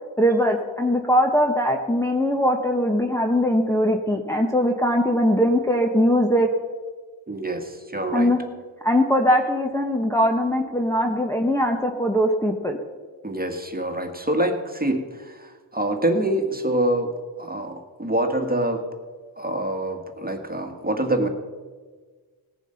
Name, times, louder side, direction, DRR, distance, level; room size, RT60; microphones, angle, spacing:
voice 1, 0.2-6.5 8.1-8.4 8.8-12.8, equal, 5° left, 0 dB, 1.2 m, -21 dB
voice 2, 7.3-8.3 13.2-17.1 17.4-18.8 19.4-21.3, right 1 dB, 20° right, 4 dB, 1.8 m, -25 dB
18.5 x 7.2 x 5.7 m, 1.5 s
cardioid pair, 65°, 49 cm